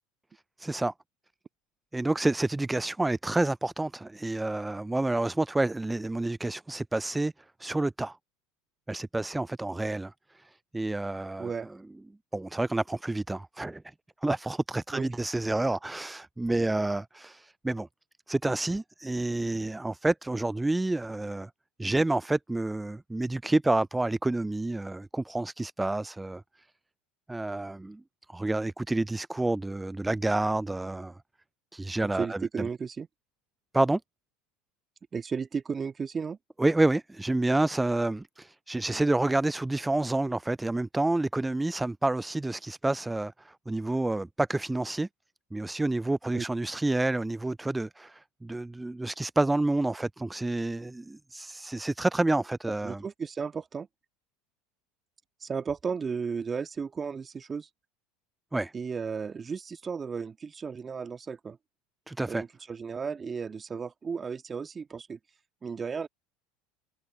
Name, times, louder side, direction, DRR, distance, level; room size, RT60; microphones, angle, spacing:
voice 1, 0.6-0.9 1.9-7.3 7.6-8.2 8.9-11.5 12.3-13.9 14.2-17.9 18.3-21.5 21.8-26.4 27.3-28.0 28.3-31.2 31.7-32.7 33.7-34.0 36.6-45.1 45.5-53.0 58.5-58.7 62.1-62.4, right 2 dB, 10° right, 0.3 m, -29 dB
voice 2, 32.1-33.1 35.1-36.4 46.3-46.4 52.8-53.9 55.4-57.7 58.7-61.6 62.3-65.2 65.6-66.1, right 5 dB, 25° right, 1.6 m, -34 dB
hypercardioid pair, 75°, 0 cm